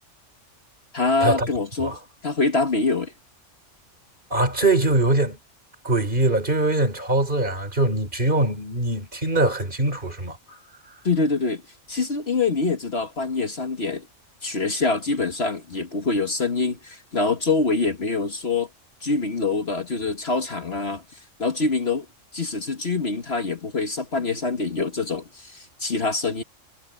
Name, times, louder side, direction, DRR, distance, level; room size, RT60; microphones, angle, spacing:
voice 1, 0.9-3.1 11.0-11.6 11.9-14.1 14.4-18.7 19.0-21.0 21.4-22.1 22.3-26.4, left 3 dB, 55° left, 1.9 m, -25 dB
voice 2, 4.3-5.4 5.8-10.6, right 2 dB, 40° right, 3.6 m, -22 dB
omnidirectional pair, 1.3 m